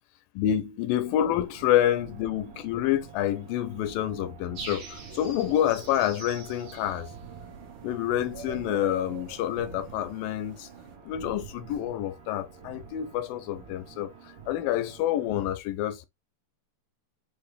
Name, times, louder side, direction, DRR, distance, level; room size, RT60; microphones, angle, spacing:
voice 1, 0.4-7.1 7.8-10.7 11.0-16.1, left 11 dB, 80° left, 2.2 m, -28 dB
sound 1, 1.1-15.5, right 6 dB, 80° right, 1.3 m, -47 dB
sound 2, 4.5-11.0, right 5 dB, 55° right, 1.6 m, -44 dB
5.6 x 2.4 x 3.2 m
omnidirectional pair, 4.1 m